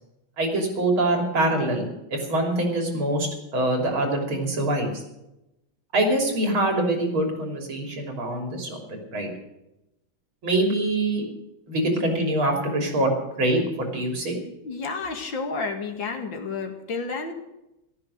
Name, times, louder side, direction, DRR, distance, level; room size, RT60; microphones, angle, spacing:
voice 1, 0.4-4.9 5.9-8.8 9.1-9.3 10.4-11.3 11.7-14.4, right 1 dB, 75° right, 2 dB, 4.0 m, -24 dB
voice 2, 14.6-17.3, left 4 dB, 60° left, 4 dB, 2.6 m, -31 dB
14.5 x 13.0 x 6.6 m, 0.90 s
omnidirectional pair, 2.3 m